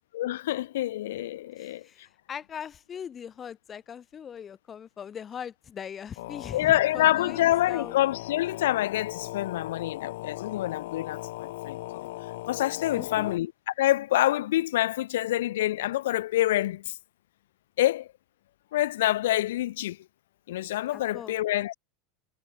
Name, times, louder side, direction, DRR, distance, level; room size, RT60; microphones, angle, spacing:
voice 1, 0.1-1.8 6.5-12.1 12.5-13.5 13.8-16.9 17.8-18.1 18.7-20.0 20.5-21.7, left 14 dB, 85° left, 0.8 m, -26 dB
voice 2, 1.6-7.9 12.9-13.4 20.9-21.4, left 8 dB, 20° left, 0.5 m, -40 dB
sound 1, 6.2-13.4, left 18 dB, 70° left, 1.5 m, -39 dB
supercardioid pair, 160°, 0 cm